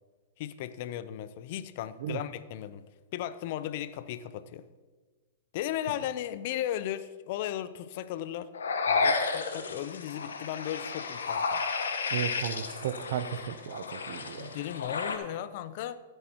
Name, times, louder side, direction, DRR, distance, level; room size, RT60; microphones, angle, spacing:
voice 1, 0.4-4.7 5.5-8.5 8.9-11.6 14.4-16.0, left 11 dB, 55° left, 0.5 m, -36 dB
sound 1, 8.5-15.2, left 4 dB, 85° left, 1.1 m, -32 dB
voice 2, 12.1-14.6, right 9 dB, 65° right, 0.6 m, -35 dB
15.0 x 7.9 x 3.0 m
hypercardioid pair, 115°, 0 cm